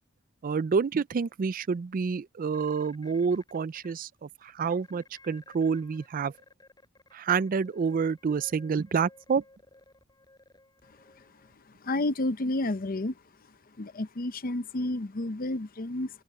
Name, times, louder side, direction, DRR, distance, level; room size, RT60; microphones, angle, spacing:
voice 1, 0.4-6.3 7.1-9.4, right 5 dB, 40° right, 0.4 m, -28 dB
sound 1, 2.5-3.9 4.4-4.5 4.8-6.1 6.3-11.5, left 2 dB, 20° left, 6.1 m, -57 dB
voice 2, 11.8-13.1 13.8-16.1, left 2 dB, 45° left, 0.8 m, -30 dB
open air
head